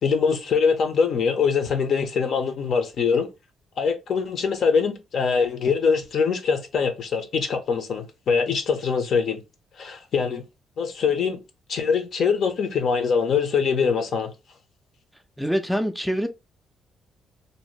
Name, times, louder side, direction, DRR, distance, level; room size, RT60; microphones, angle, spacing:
voice 1, 0.0-3.3 3.8-9.4 9.8-10.4 10.8-11.4 11.7-14.3, left 5 dB, 60° left, 0.6 m, -23 dB
voice 2, 15.4-16.3, equal, ahead, 0.3 m, -24 dB
2.6 x 2.0 x 3.0 m
cardioid pair, 90°, 0 cm